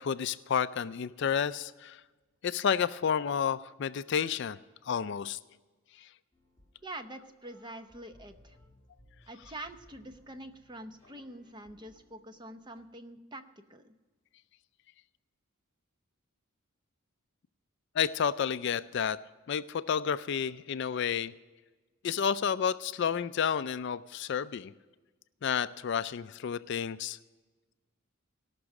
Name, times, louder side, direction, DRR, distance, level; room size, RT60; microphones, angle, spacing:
voice 1, 0.0-2.0 2.4-4.6 4.9-5.4 18.0-19.2 19.5-21.3 22.0-24.7 25.4-27.2, left 7 dB, 55° left, 14 dB, 0.4 m, -30 dB
sound 1, 6.3-12.8, left 1 dB, 15° left, 3.5 m, -62 dB
voice 2, 6.8-8.6 9.3-13.9, right 1 dB, 20° right, 8 dB, 0.8 m, -45 dB
18.0 x 6.1 x 6.4 m, 1.3 s
head